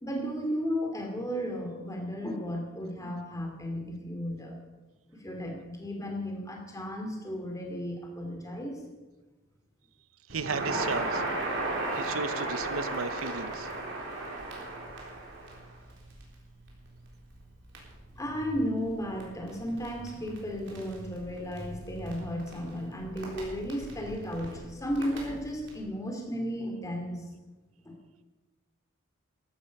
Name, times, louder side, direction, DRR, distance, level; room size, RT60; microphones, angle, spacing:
voice 1, 0.0-4.6 5.2-8.8 18.2-27.3 27.8-28.0, equal, 15° left, 1 dB, 2.8 m, -34 dB
Crackle, 10.3-25.8, right 2 dB, 60° right, 3.8 m, -37 dB
voice 2, 10.3-11.2 11.9-13.7, right 4 dB, 80° right, 12 dB, 0.9 m, -34 dB
14.5 x 11.5 x 5.4 m, 1.2 s
head